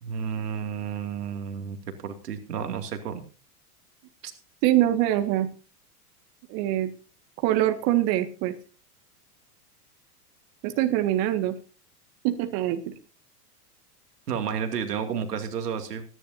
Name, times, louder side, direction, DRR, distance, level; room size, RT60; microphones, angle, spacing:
voice 1, 0.0-1.8 2.0-3.2 4.2-4.3 14.3-16.1, right 7 dB, 85° right, 6 dB, 2.6 m, -31 dB
voice 2, 4.6-5.5 6.5-6.9 7.4-8.6 10.6-11.6 12.2-12.9, right 13 dB, 50° right, 6 dB, 1.9 m, -24 dB
24.5 x 11.0 x 2.8 m, 0.35 s
hypercardioid pair, 110°, 46 cm